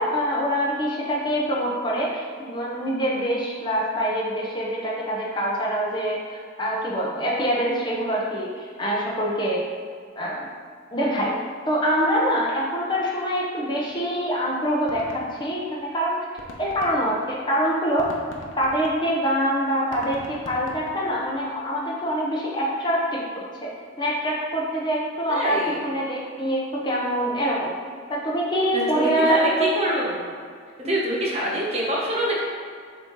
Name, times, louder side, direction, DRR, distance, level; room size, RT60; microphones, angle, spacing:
voice 1, 0.0-9.6 10.2-10.5 10.9-11.3 11.7-16.2 16.6-18.1 18.6-23.7 24.0-25.6 25.8-27.7 28.1-29.7, equal, 25° left, -4 dB, 0.8 m, -25 dB
sound 1, 13.9-14.0 14.2-14.3 14.6-15.9 16.2-21.5, left 1 dB, 80° left, 0.8 m, -42 dB
voice 2, 25.3-25.9 28.7-30.2 30.8-32.4, right 1 dB, 35° right, -4 dB, 1.1 m, -25 dB
7.4 x 2.8 x 4.5 m, 2.1 s
head